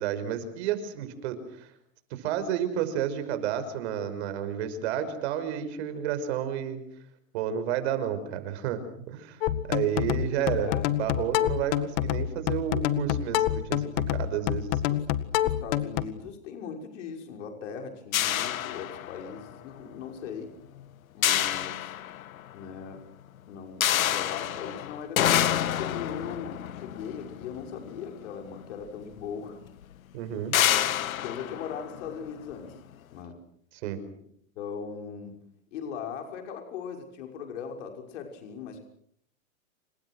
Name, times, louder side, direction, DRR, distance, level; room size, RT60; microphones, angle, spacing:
voice 1, 0.0-1.7 2.1-6.8 7.3-8.8 9.1-9.4 9.7-10.7 11.0-14.8 30.1-30.5 33.7-34.0, right 9 dB, 55° right, 11 dB, 5.8 m, -31 dB
sound 1, 9.4-16.0, left 12 dB, 45° left, 1.9 m, -27 dB
voice 2, 10.4-10.9 14.1-14.3 14.9-15.0 15.4-20.5 21.1-21.9 22.5-23.0 23.5-29.6 30.3-32.8 33.1-33.4 34.6-35.4 35.7-38.8, left 7 dB, 60° left, 4 dB, 5.9 m, -39 dB
sound 2, 18.1-19.5 21.2-22.5 23.8-28.2 29.2-29.3 29.7-29.8 30.5-32.5, left 11 dB, 85° left, 1.6 m, -28 dB
29.0 x 27.0 x 6.3 m, 0.67 s
supercardioid pair, 155°, 40 cm